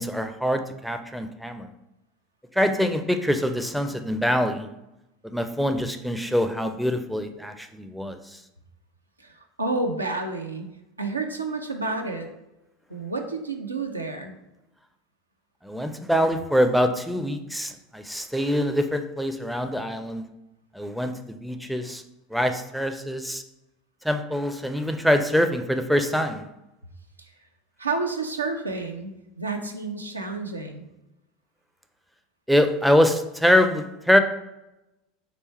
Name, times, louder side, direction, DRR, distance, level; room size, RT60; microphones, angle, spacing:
voice 1, 0.0-1.7 2.5-4.7 5.2-8.4 15.6-20.2 20.7-22.0 22.3-23.4 24.0-26.5 32.5-34.2, equal, ahead, 7 dB, 0.4 m, -24 dB
voice 2, 9.2-10.7 11.0-12.3 12.9-14.4 27.2-27.3 27.8-30.9, right 3 dB, 90° right, 4 dB, 0.4 m, -30 dB
3.3 x 3.1 x 4.2 m, 0.93 s
figure-of-eight pair, 75°, 0 cm